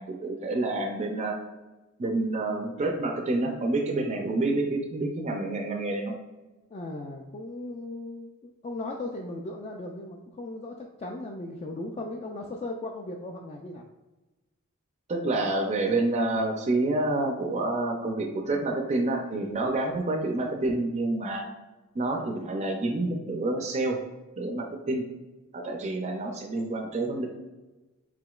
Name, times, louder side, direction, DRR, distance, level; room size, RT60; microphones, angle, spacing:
voice 1, 0.0-1.4 2.0-6.2 15.1-21.5 21.9-24.0 24.4-25.1 25.5-27.3, right 2 dB, 30° right, 2 dB, 0.5 m, -28 dB
voice 2, 6.7-13.8, left 2 dB, 30° left, 1 dB, 0.3 m, -37 dB
4.8 x 3.6 x 2.3 m, 1.1 s
head